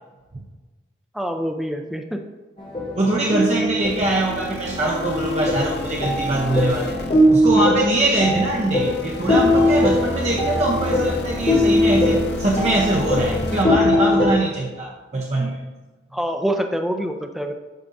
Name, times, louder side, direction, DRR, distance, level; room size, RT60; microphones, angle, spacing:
voice 1, 1.1-2.2 16.1-17.5, equal, ahead, 3 dB, 0.5 m, -25 dB
sound 1, 2.6-14.3, left 1 dB, 25° left, 1.1 m, -21 dB
voice 2, 2.9-7.0 7.3-15.6, right 1 dB, 35° right, -2 dB, 0.7 m, -22 dB
sound 2, 3.8-13.6, left 1 dB, 55° left, 0.7 m, -32 dB
9.2 x 6.2 x 2.7 m, 1.2 s
head